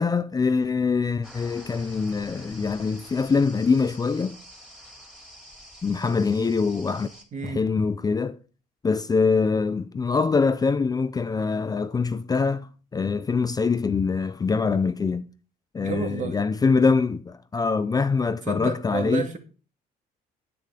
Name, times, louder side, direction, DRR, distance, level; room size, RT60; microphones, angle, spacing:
voice 1, 0.0-4.4 5.8-7.1 7.4-8.4 8.8-15.3 15.7-19.3, left 4 dB, 20° left, 0.5 m, -24 dB
sound 1, 1.2-7.2, equal, 5° right, 3.4 m, -47 dB
voice 2, 7.3-7.6 15.8-16.4 18.4-19.4, right 5 dB, 45° right, 2.3 m, -31 dB
9.4 x 9.0 x 4.9 m
cardioid pair, 110°, 17 cm